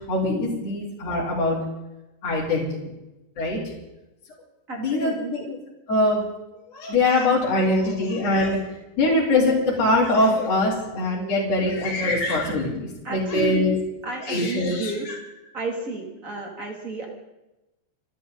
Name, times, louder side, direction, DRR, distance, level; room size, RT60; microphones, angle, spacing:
voice 1, 0.1-1.6 2.2-2.7 3.4-3.7 4.7-5.6 5.9-6.2 6.7-8.6 9.0-12.7 13.1-13.7 14.2-15.2, left 2 dB, 35° left, -7 dB, 4.5 m, -22 dB
voice 2, 4.7-5.5 13.0-13.8 14.0-15.0 15.5-17.1, right 2 dB, 25° right, 0 dB, 2.2 m, -31 dB
28.5 x 12.5 x 4.1 m, 0.97 s
omnidirectional pair, 5.5 m